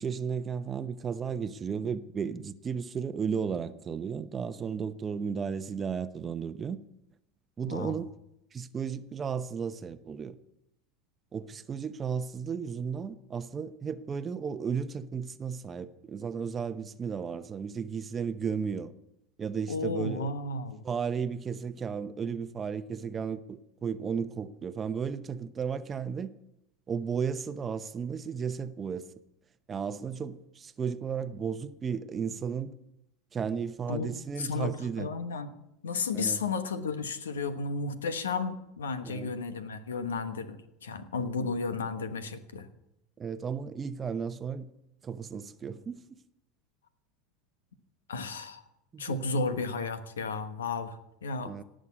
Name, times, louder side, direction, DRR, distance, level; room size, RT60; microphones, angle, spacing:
voice 1, 0.0-6.8 7.6-8.1 8.5-10.4 11.3-18.9 19.4-20.3 20.8-26.3 26.9-29.1 29.7-32.8 33.3-35.1 36.1-36.4 39.0-39.3 43.2-44.7 45.0-46.0 48.9-49.2 49.5-49.6 51.4-51.6, right 6 dB, 30° right, 0.8 m, -34 dB
voice 2, 19.7-20.8 33.9-34.1 34.4-35.5 35.8-42.7 48.1-48.6 49.0-51.5, left 4 dB, 85° left, 1.2 m, -33 dB
17.5 x 6.5 x 8.3 m
hypercardioid pair, 85°, 0 cm